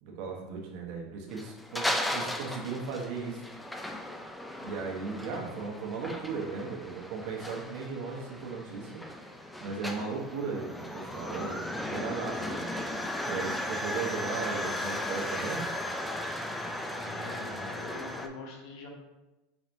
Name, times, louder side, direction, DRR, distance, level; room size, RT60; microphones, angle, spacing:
voice 1, 0.0-3.5 4.6-12.7 13.2-15.7, right 4 dB, 60° right, 0 dB, 1.0 m, -37 dB
sound 1, 1.3-18.3, left 1 dB, 5° left, 0.3 m, -36 dB
voice 2, 16.6-18.9, left 3 dB, 55° left, 0 dB, 1.1 m, -44 dB
4.5 x 4.1 x 2.6 m, 1.0 s
supercardioid pair, 140°, 0 cm